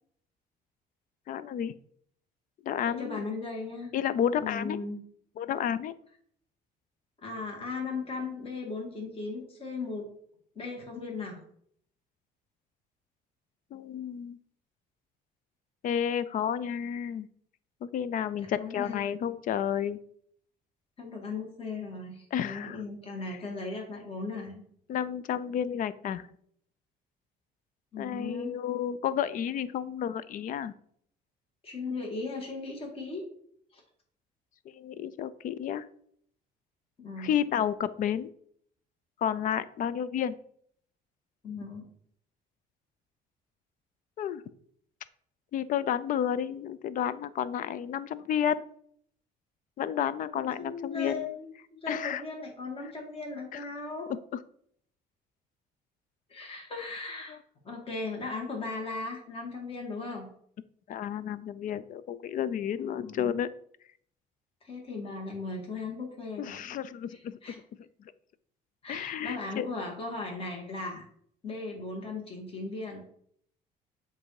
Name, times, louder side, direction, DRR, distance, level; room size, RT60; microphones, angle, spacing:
voice 1, 1.3-1.7 2.7-3.2 3.9-4.8 5.4-5.9 13.7-14.4 15.8-17.3 17.8-20.0 22.3-22.8 24.9-26.3 28.0-30.7 34.8-35.9 37.2-38.3 39.2-40.4 44.2-44.4 45.5-48.6 49.8-51.2 51.9-52.2 53.5-53.6 54.1-54.2 60.9-63.5 66.4-67.4 68.9-69.7, left 9 dB, 55° left, 16 dB, 0.4 m, -31 dB
voice 2, 2.9-3.9 4.3-5.0 7.2-10.1 10.5-11.4 18.4-19.3 21.0-24.7 27.9-28.5 31.6-33.3 33.7-33.8 37.0-37.3 41.4-41.8 50.3-54.1 56.3-57.4 57.6-60.3 62.8-63.3 64.6-66.7 67.1-67.6 68.8-71.0 71.4-73.0, left 3 dB, 35° left, 0 dB, 1.7 m, -37 dB
7.5 x 2.7 x 4.7 m, 0.64 s
cardioid pair, 110°, 17 cm